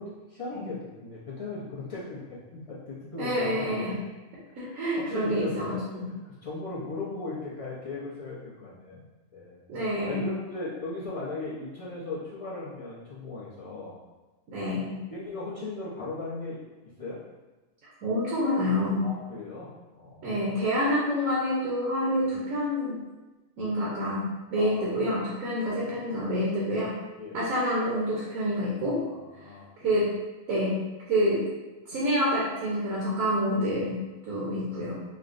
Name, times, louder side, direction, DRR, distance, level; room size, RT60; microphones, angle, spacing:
voice 1, 0.0-3.6 3.8-4.1 4.5-5.8 6.2-9.0 9.3-9.6 10.0-14.0 15.1-16.7 17.0-17.2 19.0-20.5 22.2-22.4 24.6-24.9 25.7-26.2 27.2-27.4 29.1-30.0, left 3 dB, 45° left, -7 dB, 0.4 m, -38 dB
voice 2, 3.2-4.0 4.5-6.1 9.7-10.2 14.5-15.0 18.0-19.1 20.2-23.0 23.6-27.0 27.3-29.0 29.8-30.1 30.5-30.8 31.1-31.5 31.9-34.0 34.3-35.0, equal, 70° right, -6 dB, 1.1 m, -27 dB
4.4 x 2.1 x 2.5 m, 1.2 s
omnidirectional pair, 1.5 m